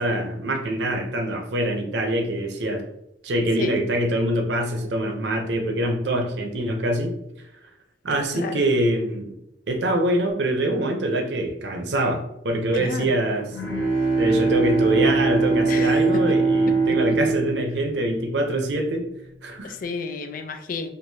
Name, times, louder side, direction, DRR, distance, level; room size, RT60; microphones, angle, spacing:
voice 1, 0.0-2.8 3.2-7.2 8.0-9.4 9.7-13.6 14.2-19.1 19.4-19.7, right 1 dB, 80° right, 4 dB, 0.6 m, -24 dB
voice 2, 12.7-13.1 15.7-16.0 17.1-17.2 19.6-20.9, left 4 dB, 50° left, 7 dB, 0.4 m, -32 dB
Bowed string instrument, 13.5-18.6, right 3 dB, 20° left, 1.2 m, -22 dB
4.6 x 2.5 x 2.7 m, 0.85 s
head